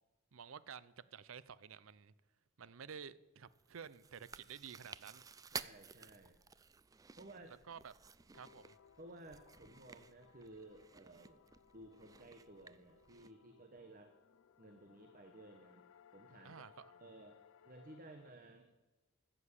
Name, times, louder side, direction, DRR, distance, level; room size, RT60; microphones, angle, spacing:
voice 1, 0.3-2.1 2.6-5.2 7.7-7.9 8.3-8.8 16.4-16.9, right 7 dB, 75° right, 18 dB, 0.6 m, -52 dB
Chewing mastication, 3.5-13.3, right 5 dB, 15° right, 0.3 m, -53 dB
voice 2, 5.5-6.4 7.2-7.6 9.0-11.4 11.7-14.1 14.6-15.8 16.1-16.6 17.0-17.4 17.6-18.7, right 2 dB, 45° right, 6 dB, 1.0 m, -56 dB
sound 1, 8.3-18.3, left 7 dB, 70° left, 0.4 m, -65 dB
14.5 x 7.7 x 8.3 m, 1.2 s
head